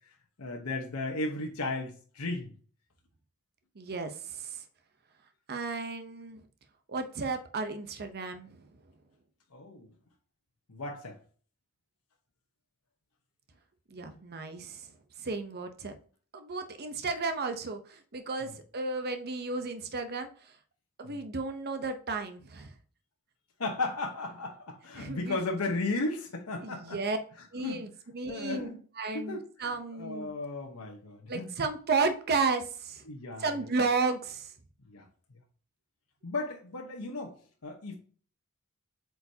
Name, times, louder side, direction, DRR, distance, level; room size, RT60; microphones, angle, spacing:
voice 1, 0.4-2.5 9.5-9.9 10.7-11.2 18.4-18.5 21.0-21.2 23.6-27.0 27.6-27.8 28.3-28.8 29.1-31.5 33.1-33.6 34.9-35.1 36.2-37.4 37.6-38.0, left 2 dB, 85° left, 1.0 m, -35 dB
voice 2, 3.8-4.6 5.5-6.4 6.9-8.7 13.9-14.9 15.2-15.9 16.3-20.5 21.0-22.7 25.0-25.4 26.6-27.2 27.5-28.7 29.0-30.3 31.3-33.0 33.4-34.5, right 4 dB, 45° right, 0.8 m, -33 dB
8.0 x 4.6 x 2.8 m
head